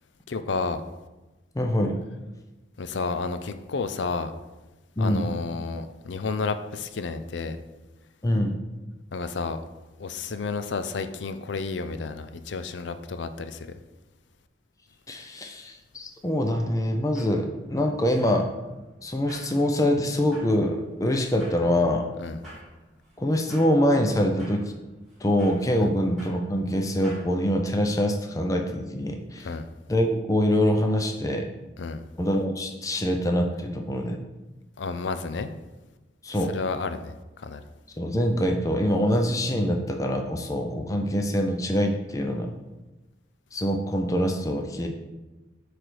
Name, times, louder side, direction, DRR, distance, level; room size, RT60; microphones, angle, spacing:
voice 1, 0.3-0.8 2.8-4.3 5.0-7.6 9.1-9.6 10.0-13.7 22.2-22.4 25.8-25.9 29.4-29.7 31.8-32.0 34.8-35.5 36.5-37.1 37.4-37.6, left 4 dB, 75° left, 10 dB, 0.5 m, -31 dB
voice 2, 1.5-2.0 5.0-5.3 8.2-8.6 15.1-18.5 19.0-22.1 23.2-24.7 25.2-29.5 29.9-31.5 32.2-34.2 36.2-36.6 38.0-42.5 43.5-44.9, equal, 20° left, 3 dB, 0.5 m, -24 dB
sound 1, 16.9-27.3, equal, ahead, 2.5 m, -50 dB
10.0 x 3.4 x 4.6 m, 1.1 s
head